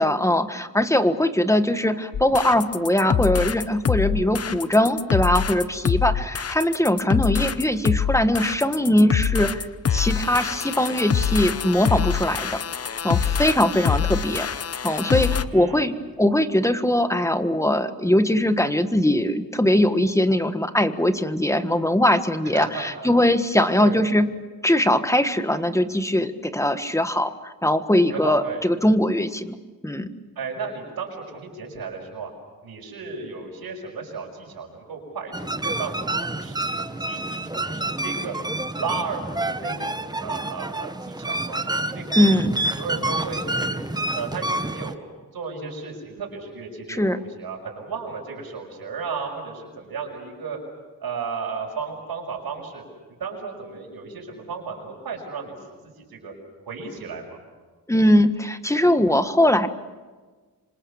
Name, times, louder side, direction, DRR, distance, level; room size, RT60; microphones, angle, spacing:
voice 1, 0.0-12.6 13.0-14.5 14.8-24.3 24.6-29.6 29.8-30.1 42.2-42.6 46.9-47.2 57.9-59.7, left 1 dB, 10° left, 9 dB, 1.4 m, -21 dB
sound 1, 2.1-15.4, left 7 dB, 40° left, 0.9 m, -25 dB
voice 2, 15.5-15.9 22.4-23.1 23.7-24.0 28.1-28.6 30.4-32.3 32.6-38.3 38.8-42.3 42.8-43.8 44.1-45.0 45.3-50.6 51.0-52.8 53.2-55.5 56.0-56.3 56.7-57.4, right 5 dB, 85° right, -1 dB, 5.9 m, -34 dB
sound 2, 35.3-44.9, right 2 dB, 10° right, 1.0 m, -28 dB
26.5 x 26.5 x 7.2 m, 1.4 s
wide cardioid pair, 125°, 36 cm